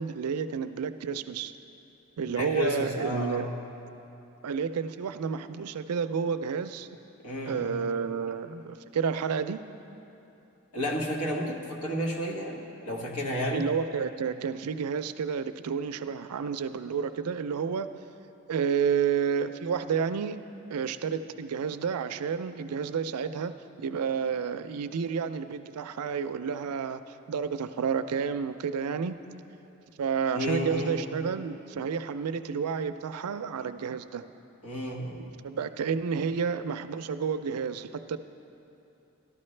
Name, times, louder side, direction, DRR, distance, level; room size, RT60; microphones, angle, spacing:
voice 1, 0.0-1.5 2.2-3.5 4.4-6.9 7.5-9.7 13.5-17.9 18.5-29.2 30.0-34.2 35.4-38.2, right 6 dB, 90° right, 11 dB, 0.4 m, -30 dB
voice 2, 2.3-3.5 7.2-7.8 10.7-13.7 30.3-31.0 34.6-35.3, equal, 80° left, -1 dB, 1.3 m, -32 dB
13.0 x 12.5 x 3.2 m, 2.9 s
head